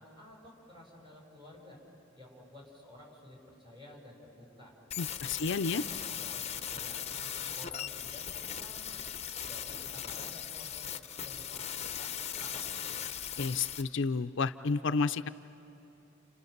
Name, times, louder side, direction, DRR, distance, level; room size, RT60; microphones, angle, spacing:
voice 1, 0.0-1.8 2.1-4.8 5.3-9.0 9.5-13.0, left 1 dB, 25° right, -1 dB, 6.5 m, -53 dB
sound 1, 4.9-13.8, left 9 dB, 30° left, 0.8 m, -39 dB
voice 2, 5.0-5.8 13.4-15.3, left 4 dB, 65° left, 10 dB, 0.5 m, -31 dB
30.0 x 30.0 x 6.7 m, 2.9 s
head